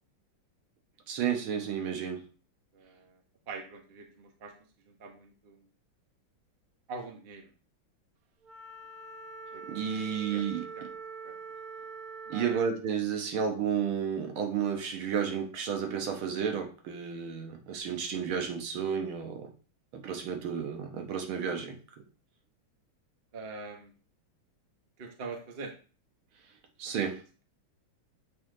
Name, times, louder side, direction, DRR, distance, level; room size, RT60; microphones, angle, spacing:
voice 1, 1.1-2.2 9.7-10.7 12.3-19.5 20.0-21.8 26.8-27.2, right 7 dB, 80° right, 3 dB, 2.0 m, -32 dB
voice 2, 2.7-3.2 3.5-4.5 4.8-5.6 6.9-7.5 9.5-10.4 10.8-10.9 11.2-11.3 12.3-12.6 23.3-23.9 25.0-25.7, right 4 dB, 35° right, 3 dB, 1.0 m, -43 dB
Wind instrument woodwind instrument, 8.4-12.7, right 5 dB, 55° right, 1.2 m, -44 dB
7.6 x 4.2 x 3.8 m, 0.37 s
omnidirectional pair, 2.3 m